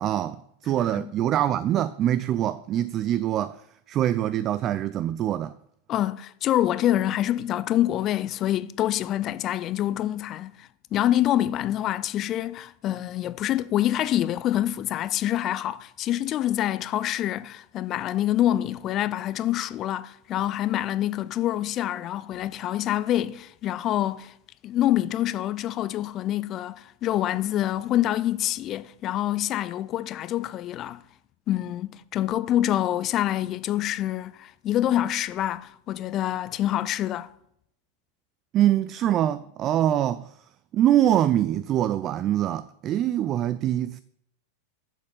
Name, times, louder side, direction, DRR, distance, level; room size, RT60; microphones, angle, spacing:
voice 1, 0.0-3.6 3.9-5.5 38.5-40.3 40.7-44.0, right 11 dB, 30° right, 0.4 m, -24 dB
voice 2, 5.9-24.3 24.6-31.0 31.5-37.3, left 12 dB, 35° left, 0.5 m, -26 dB
7.7 x 7.3 x 7.2 m
figure-of-eight pair, 90°, 0 cm